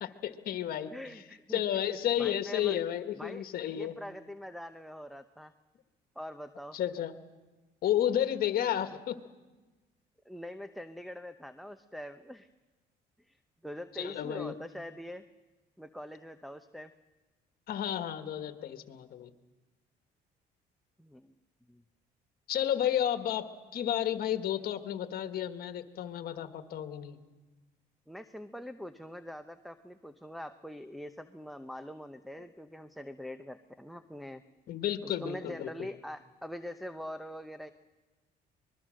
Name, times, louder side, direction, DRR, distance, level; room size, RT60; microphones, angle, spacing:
voice 1, 0.0-0.9 1.5-3.9 6.7-7.1 7.8-9.2 13.9-14.5 17.7-19.3 22.5-27.2 34.7-35.7, left 11 dB, 65° left, 8 dB, 1.6 m, -32 dB
voice 2, 0.9-1.8 2.2-2.8 3.1-5.5 6.2-6.8 10.2-12.5 13.3-13.4 13.6-15.3 15.8-16.9 21.0-21.4 21.7-21.8 28.1-34.4 35.0-37.7, equal, ahead, 7 dB, 0.8 m, -43 dB
25.0 x 21.0 x 6.5 m, 1.2 s
cardioid pair, 110°, 17 cm